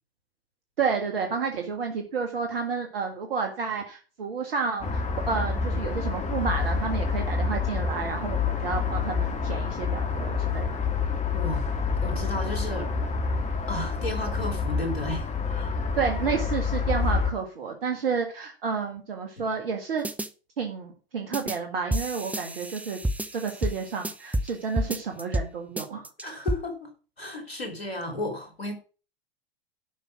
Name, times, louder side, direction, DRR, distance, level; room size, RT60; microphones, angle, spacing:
voice 1, 0.8-10.7 16.0-20.1 20.6-23.0 23.3-26.4, right 5 dB, 70° right, 1.9 m, -30 dB
sound 1, 4.8-17.3, left 5 dB, 25° left, 2.4 m, -28 dB
voice 2, 11.3-11.6 12.0-12.9 13.7-15.8 19.4-19.5 26.2-26.9 27.2-28.7, left 1 dB, 90° left, 3.3 m, -33 dB
sound 2, 20.0-20.3 21.3-21.6 21.9-24.5 24.8-25.5 25.8-26.6, right 1 dB, 5° right, 0.7 m, -29 dB
11.5 x 5.7 x 6.0 m
hypercardioid pair, 90°, 30 cm